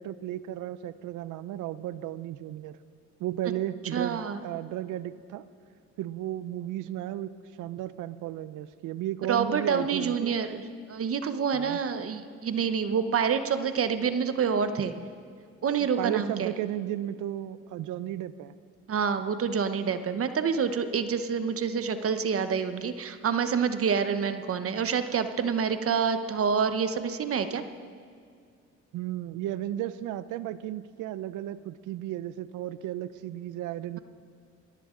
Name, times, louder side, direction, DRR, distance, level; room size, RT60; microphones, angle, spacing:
voice 1, 0.0-2.8 3.2-5.4 6.0-7.3 7.6-10.3 11.5-11.8 16.0-18.5 28.9-34.0, right 12 dB, 90° right, 15 dB, 0.6 m, -34 dB
voice 2, 3.9-4.4 9.3-10.6 10.9-14.9 15.6-16.5 18.9-27.6, right 6 dB, 50° right, 9 dB, 0.9 m, -27 dB
21.5 x 14.5 x 3.8 m, 2.2 s
cardioid pair, 90°, 30 cm